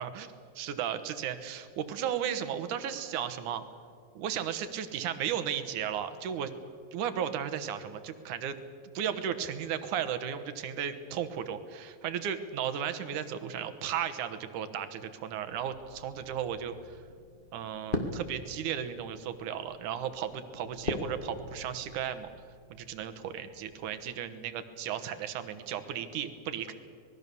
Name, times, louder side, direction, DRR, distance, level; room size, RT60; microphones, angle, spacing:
voice 1, 0.0-3.6 4.2-6.5 6.9-8.6 8.9-17.0 17.5-22.3 22.7-26.7, right 9 dB, 70° right, 10 dB, 2.6 m, -35 dB
sound 1, 15.5-24.1, left 2 dB, 20° left, 1.4 m, -42 dB
26.0 x 20.5 x 7.0 m, 2.2 s
omnidirectional pair, 4.0 m